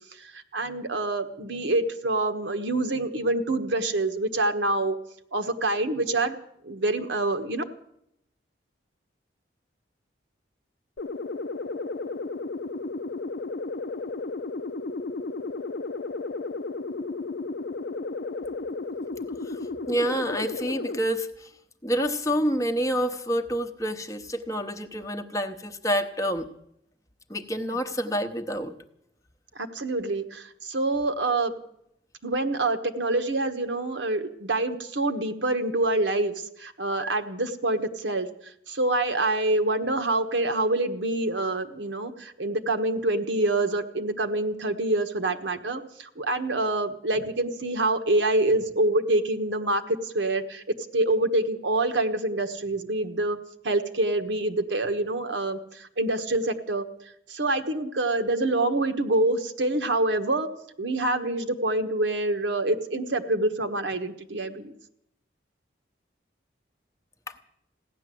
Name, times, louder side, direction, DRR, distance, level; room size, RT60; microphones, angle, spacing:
voice 1, 0.2-5.0 5.3-6.4 6.6-7.6 29.5-31.5 32.2-38.3 38.7-50.6 50.9-53.4 53.6-56.8 57.3-60.5 60.8-64.7, right 2 dB, 75° right, 7 dB, 1.3 m, -26 dB
sound 1, 11.0-21.0, left 3 dB, 60° left, 0.6 m, -33 dB
voice 2, 19.4-21.5 21.8-26.5 27.3-28.7 67.3-67.4, equal, 15° left, 6 dB, 0.8 m, -28 dB
16.5 x 11.0 x 7.7 m, 0.76 s
head